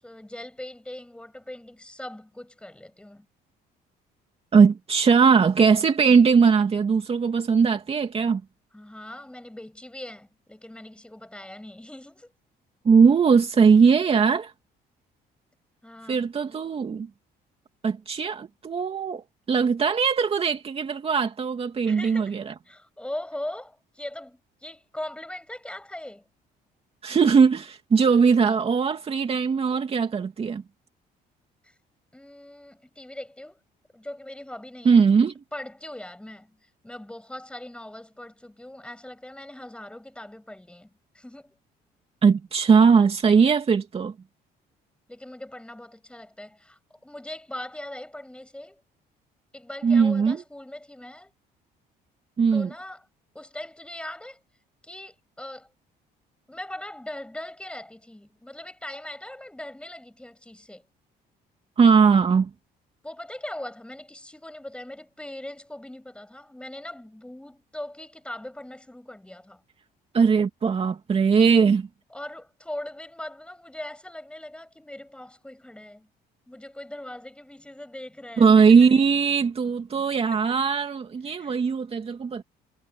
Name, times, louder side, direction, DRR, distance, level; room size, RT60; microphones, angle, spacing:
voice 1, 0.0-3.3 8.7-12.3 15.8-16.2 21.8-22.4 22.7-26.3 31.6-31.7 32.1-33.6 33.9-35.0 35.5-41.6 45.1-48.8 49.5-51.3 52.5-53.1 53.3-54.4 54.8-55.7 56.5-60.9 63.0-69.6 72.1-76.1 76.5-78.9 80.3-80.5 81.3-81.6, left 1 dB, 5° left, 7.7 m, -40 dB
voice 2, 4.5-8.4 12.8-14.5 16.1-17.1 17.8-22.5 27.0-30.6 34.8-35.3 42.2-44.1 49.8-50.4 52.4-52.7 61.8-62.5 70.1-71.9 78.4-82.4, right 5 dB, 35° right, 2.7 m, -20 dB
cardioid pair, 110°, 17 cm